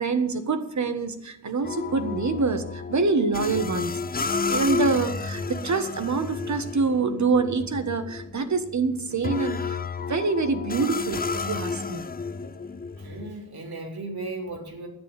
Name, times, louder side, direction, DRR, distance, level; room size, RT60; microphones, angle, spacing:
voice 1, 0.0-3.9 4.5-12.0, right 4 dB, 50° right, 8 dB, 1.4 m, -26 dB
sound 1, 1.6-13.3, left 4 dB, 25° left, 0.5 m, -32 dB
voice 2, 13.0-14.9, right 2 dB, 85° right, -1 dB, 3.8 m, -36 dB
11.0 x 9.3 x 7.4 m, 0.81 s
wide cardioid pair, 130°, 36 cm